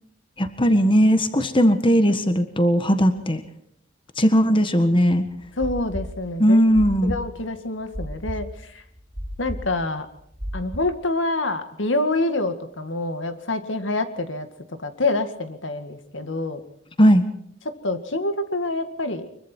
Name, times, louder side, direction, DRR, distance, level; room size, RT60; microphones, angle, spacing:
voice 1, 0.4-3.4 4.2-5.2 6.4-7.1 17.0-17.2, equal, 25° left, 9 dB, 1.5 m, -18 dB
sound 1, 5.3-8.6 8.9-10.8, equal, 20° right, 2.1 m, -33 dB
voice 2, 5.6-6.6 7.0-8.5 8.7-8.8 9.4-10.1 10.5-14.5 14.8-16.6 17.8-19.3, left 2 dB, 75° left, 9 dB, 2.1 m, -26 dB
24.5 x 23.0 x 4.6 m, 0.70 s
head